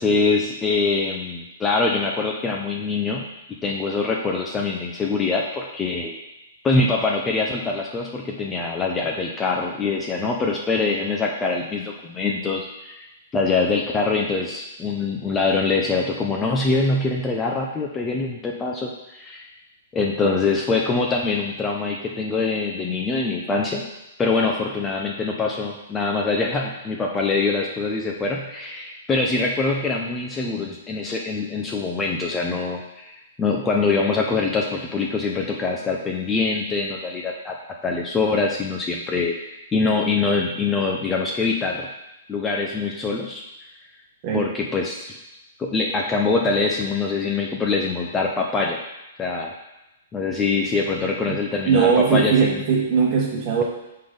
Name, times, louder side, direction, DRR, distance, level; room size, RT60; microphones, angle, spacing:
voice 1, 0.0-3.2 3.6-6.1 6.6-13.1 13.3-19.5 19.9-23.8 24.2-33.1 33.4-37.5 37.8-41.9 42.3-43.4 44.3-45.2 45.6-48.8 49.2-49.5 50.1-52.6, left 3 dB, 15° left, 0 dB, 0.5 m, -24 dB
voice 2, 51.7-53.6, right 6 dB, 35° right, -1 dB, 1.4 m, -19 dB
6.0 x 3.7 x 5.1 m, 0.94 s
hypercardioid pair, 160°, 0 cm